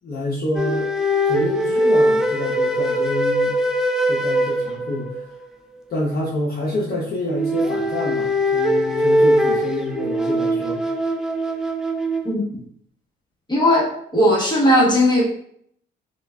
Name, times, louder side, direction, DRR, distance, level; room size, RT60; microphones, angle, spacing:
voice 1, 0.0-0.9 1.2-3.6 4.1-5.3 5.9-10.8, left 1 dB, 50° left, -4 dB, 0.9 m, -27 dB
sound 1, 0.5-5.3 7.3-12.3, equal, 5° right, 0.4 m, -21 dB
voice 2, 13.5-15.2, left 1 dB, 20° left, -5 dB, 1.3 m, -17 dB
5.1 x 2.4 x 2.3 m, 0.67 s
cardioid pair, 90°, 20 cm